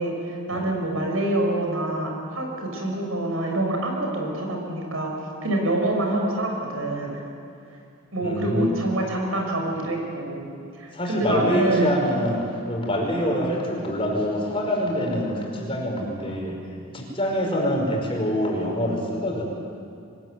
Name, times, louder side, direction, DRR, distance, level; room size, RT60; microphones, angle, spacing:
voice 1, 0.0-5.1 5.4-7.2 8.1-10.5 10.8-11.9, right 1 dB, 85° right, 1 dB, 6.0 m, -26 dB
voice 2, 8.2-8.7 10.9-16.6 16.9-19.4, equal, 25° left, -1 dB, 5.3 m, -25 dB
24.5 x 21.0 x 9.4 m, 2.4 s
head